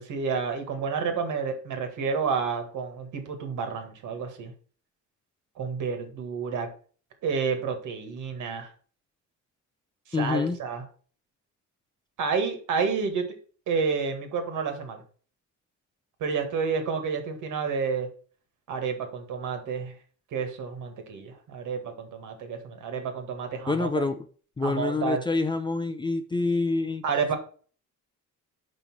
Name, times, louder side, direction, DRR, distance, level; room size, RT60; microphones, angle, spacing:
voice 1, 0.0-4.5 5.6-6.7 7.2-8.7 10.1-10.8 12.2-13.3 13.7-15.0 16.2-18.1 18.7-19.9 20.3-24.1 24.6-25.2 27.0-27.4, right 5 dB, 70° right, 6 dB, 1.8 m, -30 dB
voice 2, 10.1-10.6 23.7-24.2 24.6-27.0, left 3 dB, 15° left, 7 dB, 0.5 m, -26 dB
5.5 x 5.3 x 6.1 m, 0.42 s
cardioid pair, 140°, 31 cm